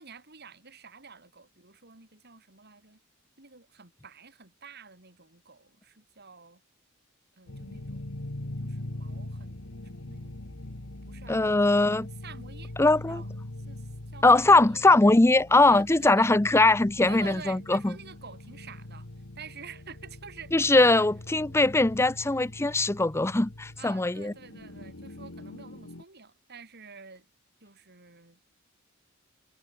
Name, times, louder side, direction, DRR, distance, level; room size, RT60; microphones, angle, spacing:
voice 1, 0.0-3.0 3.4-6.6 7.4-8.1 8.6-9.6 10.1-10.4 11.1-11.6 12.2-13.3 13.7-14.8 15.7-16.3 17.1-19.1 19.4-21.1 23.8-27.3 27.6-28.5, right 5 dB, 50° right, 5.2 m, -48 dB
sound 1, 7.5-26.0, left 1 dB, 65° left, 1.9 m, -42 dB
voice 2, 11.3-12.1 12.8-13.2 14.2-17.9 20.5-24.3, left 2 dB, 15° left, 0.6 m, -21 dB
head